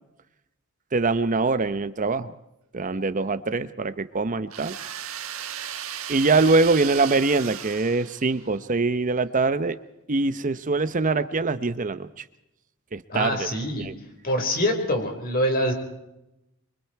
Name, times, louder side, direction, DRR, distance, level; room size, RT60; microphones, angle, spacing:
voice 1, 0.9-2.3 2.7-4.8 6.1-9.8 10.1-12.2 12.9-13.5 13.8-13.9, right 3 dB, 40° right, 12 dB, 0.8 m, -23 dB
sound 1, 4.5-8.6, right 9 dB, 75° right, 1.7 m, -35 dB
voice 2, 13.1-13.9 14.2-15.7, equal, 45° left, 4 dB, 4.9 m, -25 dB
27.0 x 24.0 x 4.6 m, 0.88 s
head